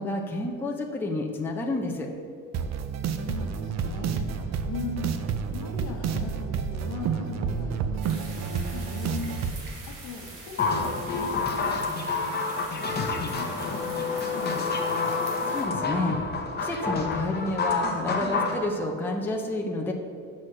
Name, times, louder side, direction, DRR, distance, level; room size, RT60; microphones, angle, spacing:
voice 1, 0.0-2.1 15.2-16.2 16.6-19.9, left 2 dB, 5° left, 0 dB, 0.5 m, -30 dB
sound 1, 2.5-9.6, right 6 dB, 60° right, 0.5 m, -30 dB
voice 2, 3.1-15.0, left 4 dB, 70° left, 2 dB, 1.2 m, -40 dB
sound 2, 8.0-15.6, right 3 dB, 90° right, 1.6 m, -44 dB
sound 3, 10.6-18.6, left 4 dB, 30° left, 0.8 m, -28 dB
6.2 x 4.1 x 6.4 m, 2.3 s
cardioid pair, 150°, 31 cm